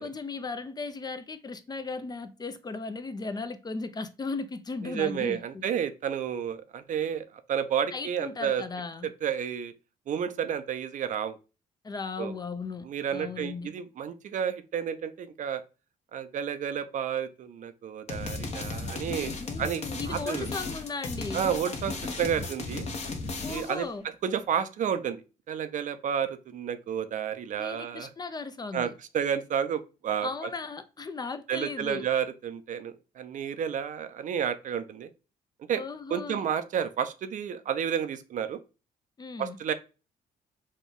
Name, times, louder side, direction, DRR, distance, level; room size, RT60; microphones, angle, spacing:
voice 1, 0.0-5.6 7.9-9.1 11.8-12.9 13.1-13.7 19.4-21.4 23.4-24.0 27.6-28.9 30.2-32.1 35.7-36.4 39.2-39.6, left 4 dB, 25° left, 0.5 m, -36 dB
voice 2, 4.8-8.6 9.2-9.7 10.1-11.4 12.2-12.3 12.8-15.6 16.1-20.5 21.3-22.9 23.5-23.8 24.2-28.1 28.7-30.5 31.5-35.1 35.7-35.8 36.1-38.6 39.4-39.7, right 8 dB, 55° right, 0.5 m, -31 dB
sound 1, 18.1-23.8, left 3 dB, 45° left, 1.0 m, -35 dB
4.2 x 2.3 x 3.5 m
cardioid pair, 85°, 16 cm